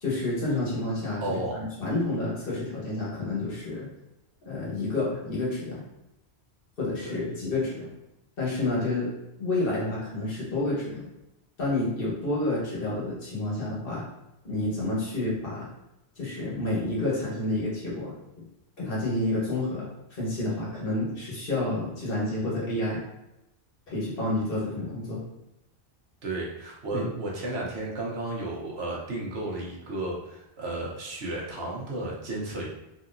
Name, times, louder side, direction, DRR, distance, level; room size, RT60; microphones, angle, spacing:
voice 1, 0.0-3.9 4.4-5.8 6.8-7.9 8.4-9.1 9.4-11.1 11.6-14.0 14.4-15.7 16.2-18.1 18.8-23.0 23.9-25.2 26.9-27.1, left 2 dB, 55° left, -6 dB, 1.5 m, -29 dB
voice 2, 1.2-1.6 7.0-7.1 26.2-32.7, right 2 dB, 70° right, -3 dB, 1.2 m, -33 dB
4.0 x 2.9 x 2.6 m, 0.90 s
omnidirectional pair, 1.1 m